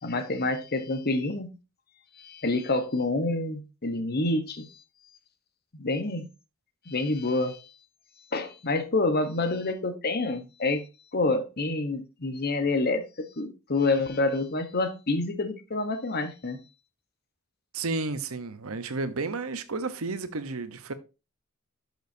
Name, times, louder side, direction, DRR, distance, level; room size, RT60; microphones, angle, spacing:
voice 1, 0.0-1.5 2.2-4.7 5.7-6.3 6.9-7.6 8.3-10.8 11.1-16.6, left 2 dB, 50° left, 1.1 m, -27 dB
voice 2, 17.7-20.9, right 3 dB, 85° right, 0.9 m, -32 dB
12.0 x 6.3 x 2.7 m
head